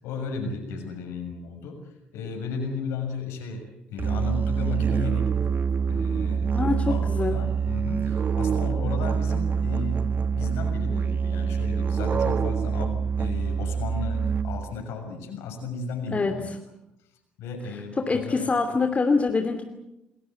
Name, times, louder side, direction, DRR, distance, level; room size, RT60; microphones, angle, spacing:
voice 1, 0.0-3.6 3.9-5.6 5.9-16.5 17.4-18.5, left 4 dB, 60° left, 5 dB, 6.5 m, -34 dB
Musical instrument, 4.0-14.8, right 6 dB, 40° right, 1.5 m, -26 dB
voice 2, 6.5-7.4 16.1-16.4 18.1-19.6, left 4 dB, 25° left, 5 dB, 2.7 m, -24 dB
28.5 x 21.0 x 8.0 m, 0.90 s
figure-of-eight pair, 50°, 5 cm